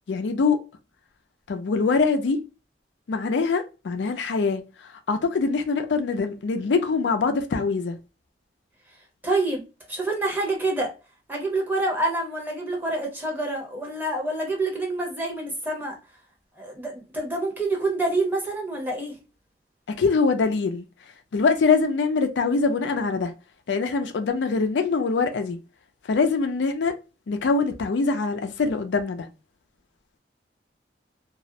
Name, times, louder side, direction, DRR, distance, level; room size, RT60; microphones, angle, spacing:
voice 1, 0.1-0.6 1.5-2.4 3.1-4.6 5.1-8.0 20.0-20.8 21.3-23.3 23.7-25.6 26.1-27.0 27.3-29.3, left 4 dB, 90° left, 0.4 m, -23 dB
voice 2, 9.2-9.6 9.9-10.9 11.3-16.0 16.6-19.2, right 2 dB, 10° right, 0.7 m, -27 dB
2.3 x 2.0 x 2.6 m
head